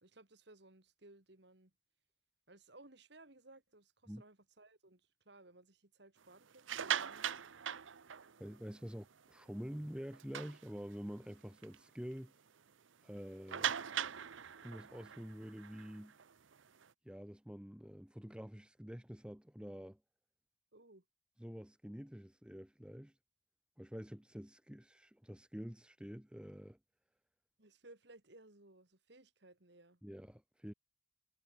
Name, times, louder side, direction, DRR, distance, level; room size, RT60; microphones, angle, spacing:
voice 1, 0.0-1.7 2.5-7.4 20.7-21.0 27.6-30.0, right 2 dB, 60° right, 2.3 m, -61 dB
sound 1, 6.5-8.6 9.1-9.3 9.6-9.7 10.1-11.1 11.6-11.7 12.1-12.2 13.5-16.8, right 9 dB, 80° right, 0.8 m, -40 dB
voice 2, 8.4-12.3 13.0-13.7 14.6-16.1 17.0-20.0 21.4-23.1 23.8-26.8 30.0-30.7, equal, 5° right, 0.8 m, -47 dB
head